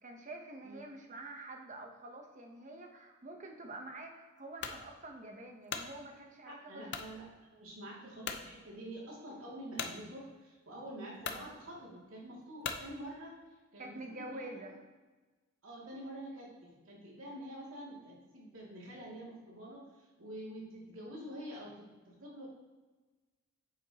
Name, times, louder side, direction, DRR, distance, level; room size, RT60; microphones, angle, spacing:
voice 1, 0.0-6.9 13.8-14.8, right 2 dB, 40° right, 3 dB, 1.0 m, -47 dB
sound 1, 4.6-4.8 5.4-5.9 6.9-7.1 7.7-7.8 8.2-8.5 9.8-10.0 10.8-10.9 11.2-11.5 12.6-12.9, left 6 dB, 55° left, 0.6 m, -39 dB
voice 2, 6.4-13.3 13.7-14.7 15.6-22.5, right 1 dB, 85° right, -5 dB, 2.6 m, -47 dB
8.6 x 7.3 x 3.0 m, 1.3 s
head